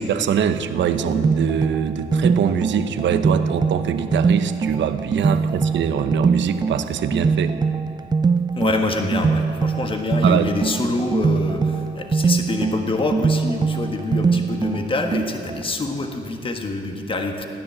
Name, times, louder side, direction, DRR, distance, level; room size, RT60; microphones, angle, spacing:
voice 1, 0.0-7.6 9.8-9.9 10.2-10.5, right 8 dB, 70° right, 9 dB, 0.9 m, -23 dB
sound 1, 0.8-15.6, right 5 dB, 20° right, 0.3 m, -22 dB
voice 2, 8.6-17.5, left 2 dB, 25° left, 4 dB, 1.5 m, -26 dB
16.0 x 10.5 x 7.7 m, 2.4 s
cardioid pair, 90°, 20 cm